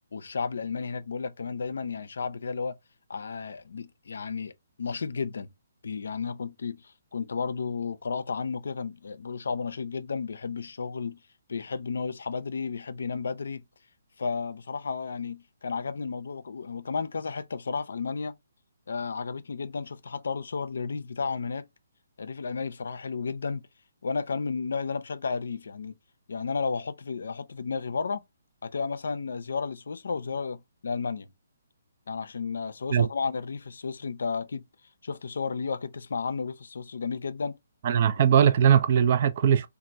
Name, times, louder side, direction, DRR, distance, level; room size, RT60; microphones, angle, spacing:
voice 1, 0.1-2.8 3.1-4.5 4.8-5.5 5.8-11.2 11.5-13.6 14.2-18.4 18.9-21.7 22.2-23.6 24.0-26.0 26.3-28.2 28.6-31.3 32.1-34.6 35.0-37.6, left 5 dB, 75° left, 0.4 m, -33 dB
voice 2, 37.8-39.7, right 8 dB, 45° right, 0.4 m, -20 dB
2.9 x 2.4 x 2.6 m
hypercardioid pair, 150°, 0 cm